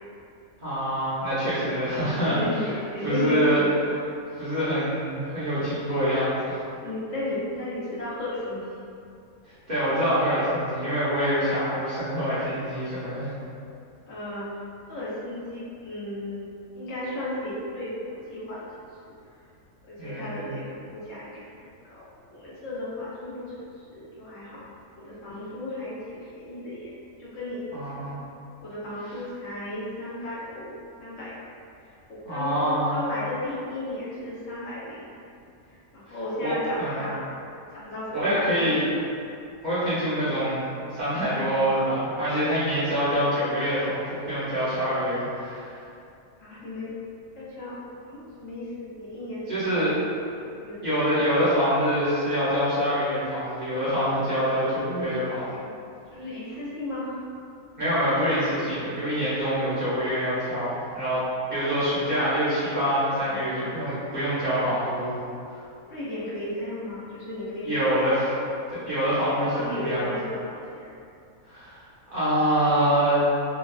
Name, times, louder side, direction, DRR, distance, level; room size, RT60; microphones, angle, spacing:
voice 1, 0.6-2.6 3.0-3.6 4.3-6.6 9.7-13.3 20.0-20.5 27.7-28.1 32.2-33.0 36.1-37.0 38.1-38.8 39.6-45.7 49.5-49.9 50.8-55.5 57.8-61.2 61.5-65.1 65.5-65.6 67.6-68.3 68.7-70.1 71.5-71.8 72.1-73.2, equal, 40° right, -14 dB, 0.8 m, -25 dB
voice 2, 2.2-3.8 6.7-8.6 14.1-14.5 14.9-16.4 16.7-18.6 19.8-20.6 20.9-21.5 21.9-24.6 25.0-26.9 27.2-27.6 27.9-28.0 28.6-30.7 31.0-31.3 32.1-35.1 35.9-37.2 37.7-38.9 46.4-46.9 47.4-47.8 48.1-50.1 50.4-50.8 56.1-57.2 63.2-63.5 65.9-68.0 69.3-70.9, left 1 dB, 65° left, -9 dB, 1.0 m, -34 dB
2.9 x 2.3 x 2.3 m, 2.5 s
omnidirectional pair, 1.5 m